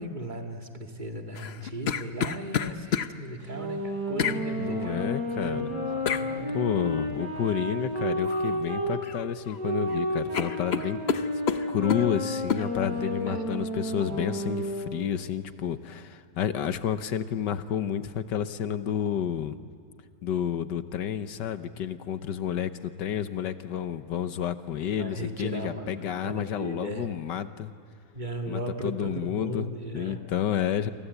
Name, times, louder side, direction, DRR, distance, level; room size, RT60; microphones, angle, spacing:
voice 1, 0.0-5.1 5.4-6.6 12.8-13.4 25.0-27.1 28.1-30.2, right 1 dB, 25° right, 3 dB, 2.1 m, -37 dB
sound 1, 1.3-3.1 4.2-4.4 6.1-6.3 8.3-8.5 8.9-9.6 9.9-10.0 10.3-12.1 12.5-12.7, left 7 dB, 50° left, 0.8 m, -29 dB
sound 2, 3.4-8.9 9.5-14.7, equal, 65° right, 5.8 m, -31 dB
voice 2, 4.6-5.7 6.5-11.0 11.7-19.6 20.2-27.7 28.5-30.9, left 9 dB, 85° left, 11 dB, 1.7 m, -30 dB
29.5 x 24.0 x 8.2 m, 2.5 s
omnidirectional pair, 1.8 m